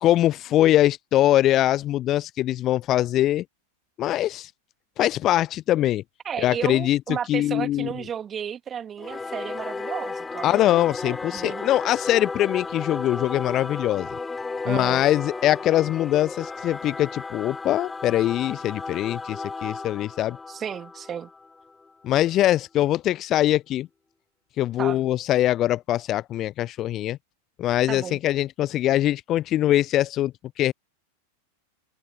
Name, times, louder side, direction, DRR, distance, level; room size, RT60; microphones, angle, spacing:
voice 1, 0.0-3.4 4.0-4.5 5.0-6.0 6.4-7.0 7.3-7.9 10.4-14.1 14.6-20.4 22.0-23.9 24.6-27.2 27.6-30.3 30.6-30.7, left 13 dB, 35° left, 0.6 m, -22 dB
voice 2, 6.2-11.7 14.7-15.0 20.5-21.3 24.8-25.0 27.9-28.2, right 8 dB, 25° right, 2.8 m, -33 dB
Singing / Musical instrument, 9.0-21.9, left 4 dB, 10° left, 3.4 m, -34 dB
figure-of-eight pair, 90°, 0 cm